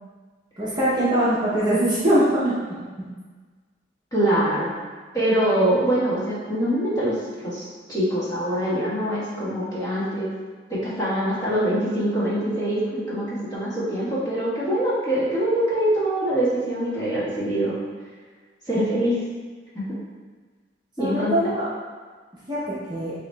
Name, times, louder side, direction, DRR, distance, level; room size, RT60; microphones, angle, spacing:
voice 1, 0.6-2.6 21.0-21.6 22.5-23.1, right 1 dB, 20° right, -9 dB, 0.8 m, -22 dB
voice 2, 4.1-4.7 5.1-10.3 10.7-17.8 18.7-19.3 19.7-19.9 21.0-21.3, right 1 dB, 20° left, -10 dB, 1.4 m, -24 dB
7.3 x 2.9 x 2.2 m, 1.4 s
head